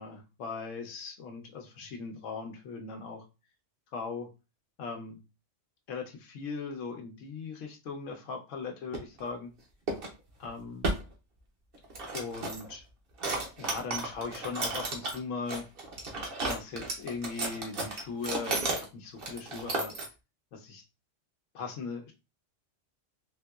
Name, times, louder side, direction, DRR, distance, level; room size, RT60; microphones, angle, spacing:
voice 1, 0.0-3.2 3.9-4.3 4.8-5.2 5.9-9.5 10.4-10.9 12.1-12.8 13.6-15.7 16.4-19.9 20.5-20.8 21.5-22.1, left 4 dB, 85° left, 3 dB, 1.0 m, -39 dB
sound 1, 8.9-9.2 9.9-10.1 10.4-10.5 10.8-11.0 11.7-12.7 13.2-15.2 15.5-18.8 19.2-20.1, right 2 dB, 50° right, 0.9 m, -33 dB
3.7 x 2.7 x 2.3 m, 0.28 s
omnidirectional pair, 1.3 m